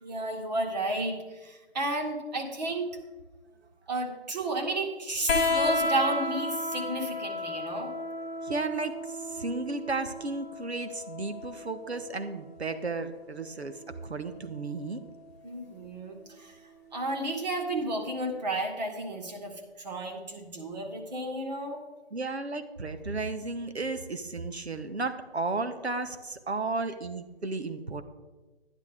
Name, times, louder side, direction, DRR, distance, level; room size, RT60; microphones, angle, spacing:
voice 1, 0.0-2.9 3.9-7.9 15.4-16.6 16.9-21.8, right 1 dB, 40° right, 1 dB, 2.0 m, -32 dB
sound 1, 5.3-12.4 13.7-14.5 15.8-15.9, left 2 dB, 15° left, 0.8 m, -32 dB
voice 2, 8.4-13.7 14.0-15.0 22.1-28.0, right 3 dB, 85° right, 9 dB, 1.1 m, -34 dB
11.5 x 10.5 x 3.6 m, 1.2 s
figure-of-eight pair, 145°, 32 cm